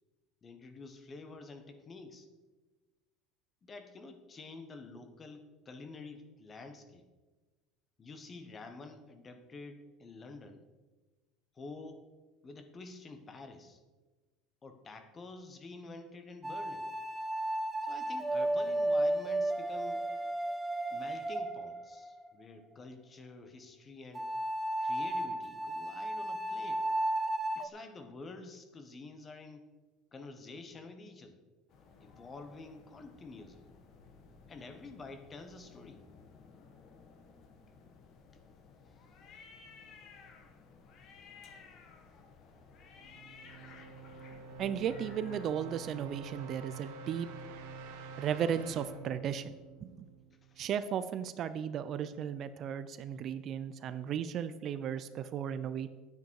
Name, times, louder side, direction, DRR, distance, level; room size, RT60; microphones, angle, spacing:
voice 1, 0.4-2.3 3.6-7.0 8.0-10.7 11.5-12.1 12.4-13.8 14.6-16.9 17.8-20.0 20.9-24.3 24.8-26.9 27.5-29.7 30.1-31.4 32.0-33.7 34.5-36.0 50.4-50.6, left 3 dB, 25° left, 8 dB, 1.3 m, -49 dB
sound 1, 16.4-22.3 24.1-27.7, right 1 dB, 10° right, 0.8 m, -33 dB
sound 2, 31.7-45.5, left 5 dB, 50° left, 1.5 m, -56 dB
sound 3, 42.9-50.8, right 4 dB, 80° right, 1.6 m, -48 dB
voice 2, 44.6-47.3 48.2-50.1 50.6-55.9, right 8 dB, 45° right, 12 dB, 0.6 m, -35 dB
10.5 x 9.3 x 4.8 m, 1.2 s
supercardioid pair, 125°, 0 cm